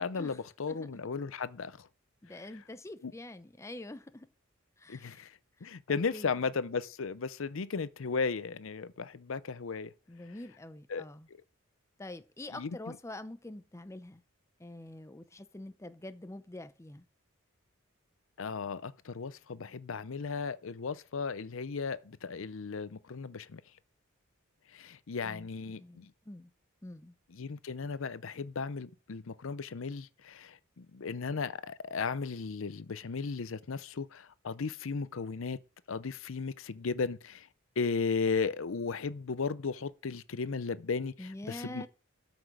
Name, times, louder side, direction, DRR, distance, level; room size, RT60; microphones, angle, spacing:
voice 1, 0.0-1.9 3.0-3.1 4.9-5.3 5.6-9.9 10.9-11.0 12.5-13.0 18.4-23.6 24.7-26.1 27.3-35.6 35.9-37.5 37.8-41.9, left 5 dB, 65° left, 0.6 m, -35 dB
voice 2, 2.2-4.3 4.8-5.3 5.6-6.3 10.1-11.3 12.0-14.2 14.6-17.0 25.2-25.5 25.7-26.5 26.8-27.1 41.2-41.9, left 1 dB, 15° left, 0.6 m, -46 dB
13.0 x 6.1 x 4.8 m
head